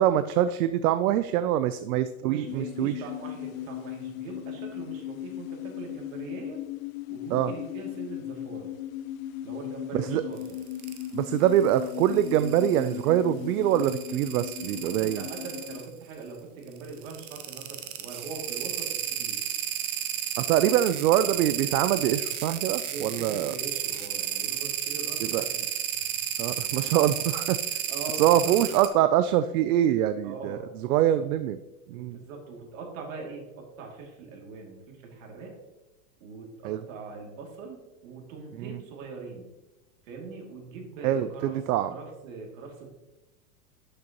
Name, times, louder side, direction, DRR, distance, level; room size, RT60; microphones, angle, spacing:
voice 1, 0.0-3.0 7.3-7.5 9.9-10.2 11.1-15.2 20.4-23.6 25.2-25.5 26.4-27.6 28.2-30.6 30.9-31.6 31.9-32.2 36.6-36.8 38.6-38.7 41.0-41.9, right 11 dB, 75° right, 12 dB, 0.6 m, -24 dB
voice 2, 2.2-6.6 7.1-8.7 9.4-10.6 14.6-19.4 22.8-25.6 25.9-26.2 27.9-28.5 30.2-30.6 31.9-35.5 36.2-39.5 40.0-41.6 41.9-42.9, right 4 dB, 60° right, 0 dB, 2.6 m, -42 dB
sound 1, 2.5-15.9, left 12 dB, 65° left, 0.6 m, -37 dB
sound 2, 10.4-11.1 11.7-13.0 13.7-15.8 16.9-28.9, right 11 dB, 25° right, 0.5 m, -32 dB
11.5 x 6.7 x 3.0 m, 1.0 s
supercardioid pair, 165°, 44 cm